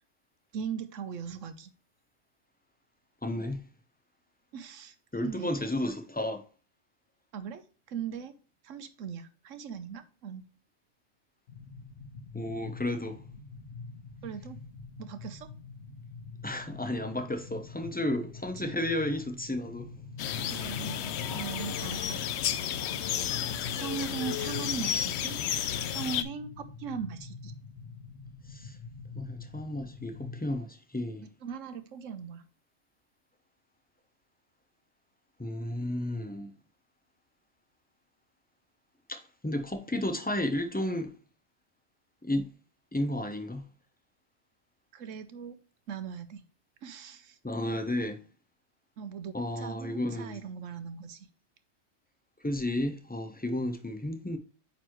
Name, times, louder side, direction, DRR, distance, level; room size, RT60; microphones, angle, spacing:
voice 1, 0.5-1.7 4.5-4.9 5.2-5.5 5.8-5.9 7.3-7.6 7.9-8.4 8.6-10.4 14.2-14.6 15.0-15.5 20.5-22.2 22.7-23.0 23.8-25.4 25.9-27.5 31.2-32.5 44.9-45.6 45.9-46.4 46.8-47.4 49.0-51.3, right 7 dB, 80° right, 1.1 m, -39 dB
voice 2, 3.2-3.6 5.1-6.4 12.3-13.2 16.4-19.9 28.5-28.8 29.1-31.2 35.4-36.5 39.1-41.1 42.2-42.5 42.9-43.7 47.4-48.2 49.3-50.4 52.4-54.4, left 1 dB, 10° left, 0.5 m, -32 dB
sound 1, 11.5-30.5, left 4 dB, 85° left, 1.3 m, -45 dB
sound 2, 20.2-26.2, left 9 dB, 65° left, 0.8 m, -32 dB
9.0 x 4.0 x 3.0 m
omnidirectional pair, 1.3 m